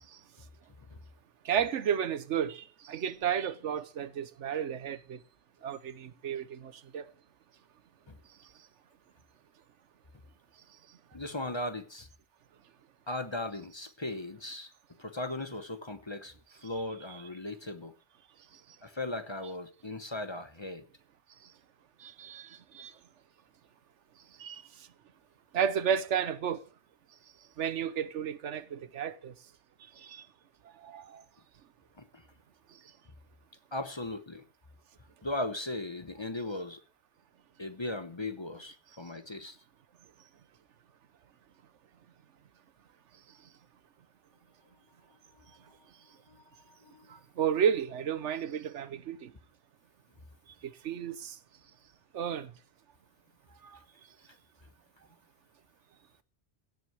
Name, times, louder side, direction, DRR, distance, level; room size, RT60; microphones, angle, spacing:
voice 1, 1.4-5.2 5.6-7.0 22.0-22.5 22.7-22.9 24.4-24.6 25.5-26.6 27.6-29.3 30.1-30.2 30.8-31.2 47.4-49.3 50.8-51.3 52.1-52.5, right 8 dB, 90° right, 1.2 m, -32 dB
voice 2, 11.1-12.1 13.1-14.7 15.0-16.3 16.6-17.9 18.8-20.8 32.0-32.2 33.7-34.4 35.2-36.8 37.6-39.5 46.3-47.2, left 2 dB, 25° left, 1.0 m, -38 dB
16.5 x 6.3 x 7.9 m
omnidirectional pair, 1.2 m